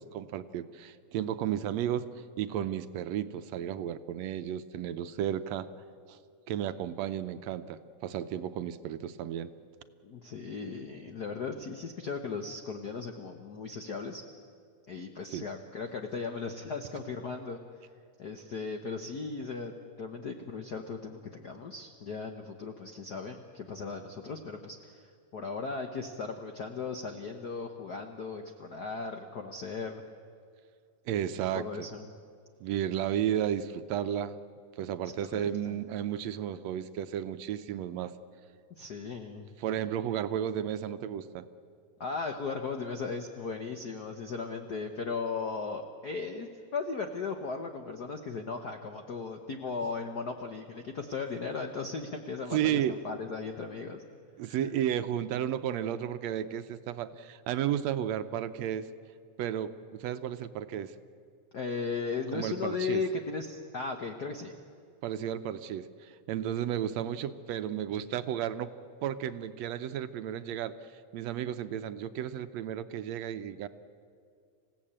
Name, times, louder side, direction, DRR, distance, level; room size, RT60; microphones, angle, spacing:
voice 1, 0.0-2.1 2.4-5.7 6.1-6.2 6.5-9.5 15.3-15.4 31.1-31.7 32.6-34.4 34.8-38.1 39.6-41.5 52.5-53.0 54.4-58.9 59.4-60.9 62.3-63.0 65.0-68.7 69.0-70.8 71.1-73.7, right 10 dB, 75° right, 11 dB, 1.8 m, -33 dB
voice 2, 10.0-14.2 14.9-17.6 18.2-30.0 31.5-32.1 35.3-35.8 38.8-39.5 42.0-54.0 54.4-54.7 61.5-64.5, left 4 dB, 65° left, 5 dB, 0.9 m, -37 dB
27.0 x 16.5 x 8.7 m, 2.2 s
omnidirectional pair, 3.3 m